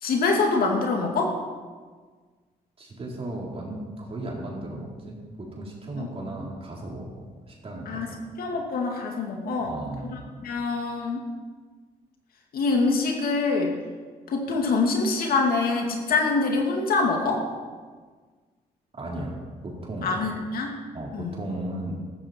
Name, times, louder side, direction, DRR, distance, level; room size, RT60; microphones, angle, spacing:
voice 1, 0.0-1.4 6.0-6.1 7.9-9.8 10.1-11.2 12.5-13.7 14.3-17.4 20.0-20.8 21.1-21.3, left 3 dB, 75° left, 1 dB, 2.4 m, -25 dB
voice 2, 2.8-5.2 5.5-8.1 9.6-10.2 19.0-19.4 19.6-20.2 20.9-21.9, right 1 dB, 40° right, -3 dB, 4.2 m, -35 dB
14.0 x 13.5 x 4.5 m, 1.5 s
cardioid pair, 85°, 15 cm